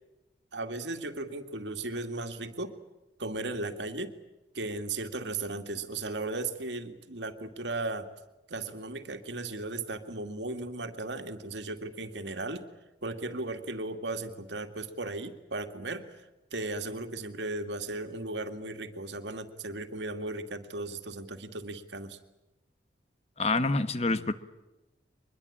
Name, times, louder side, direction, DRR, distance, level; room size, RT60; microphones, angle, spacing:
voice 1, 0.5-2.8 3.2-4.1 4.5-8.1 8.5-12.7 13.0-16.2 16.5-22.2, right 2 dB, 80° right, 7 dB, 2.3 m, -36 dB
voice 2, 23.4-24.3, left 3 dB, 35° left, 12 dB, 1.3 m, -27 dB
24.0 x 21.5 x 8.7 m, 1.0 s
head